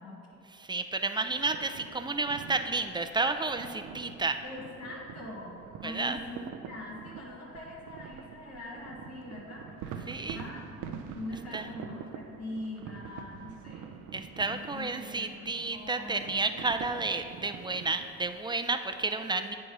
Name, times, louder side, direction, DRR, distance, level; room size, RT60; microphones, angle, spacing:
voice 1, 0.0-0.4 4.4-13.9 14.4-16.5, left 1 dB, 55° left, -6 dB, 1.8 m, -43 dB
voice 2, 0.6-4.4 5.8-6.2 10.1-10.4 11.5-11.7 14.1-19.6, right 3 dB, 15° right, 8 dB, 0.4 m, -31 dB
sound 1, 1.4-18.3, right 7 dB, 85° right, 0.6 m, -46 dB
8.5 x 4.8 x 5.4 m, 2.6 s
cardioid pair, 90°, 30 cm